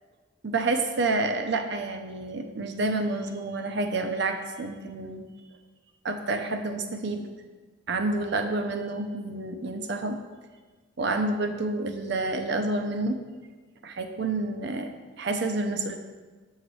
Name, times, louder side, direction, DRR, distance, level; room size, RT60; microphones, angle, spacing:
voice 1, 0.4-5.3 6.0-7.3 7.9-10.2 11.0-13.2 13.8-14.9 15.2-16.0, right 2 dB, 65° right, 6 dB, 0.6 m, -29 dB
7.8 x 5.6 x 3.2 m, 1.4 s
head